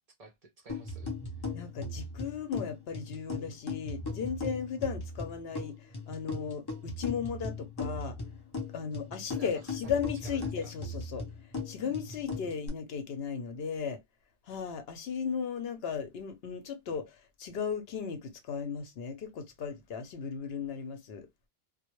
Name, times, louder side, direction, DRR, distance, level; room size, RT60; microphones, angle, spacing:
voice 1, 0.2-1.5 9.3-10.7 11.8-12.1, right 2 dB, 45° right, 0.6 m, -52 dB
sound 1, 0.7-12.7, left 3 dB, 30° left, 0.5 m, -39 dB
voice 2, 1.5-5.8 6.1-8.2 8.7-11.2 11.7-14.0 14.5-21.3, left 7 dB, 75° left, 0.9 m, -36 dB
2.2 x 2.2 x 2.9 m
omnidirectional pair, 1.1 m